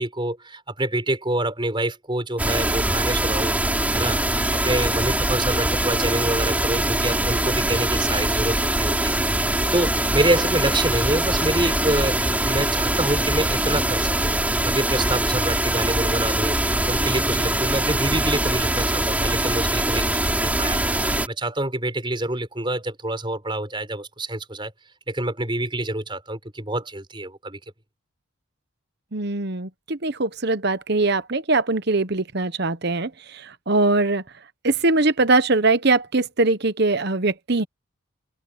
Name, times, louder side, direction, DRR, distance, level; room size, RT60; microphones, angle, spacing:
voice 1, 0.0-24.7 25.1-27.6, right 1 dB, 25° right, 5.4 m, -27 dB
sound 1, 2.4-21.3, right 1 dB, 5° right, 4.1 m, -23 dB
voice 2, 29.1-34.2 34.6-37.6, right 3 dB, 50° right, 1.1 m, -22 dB
head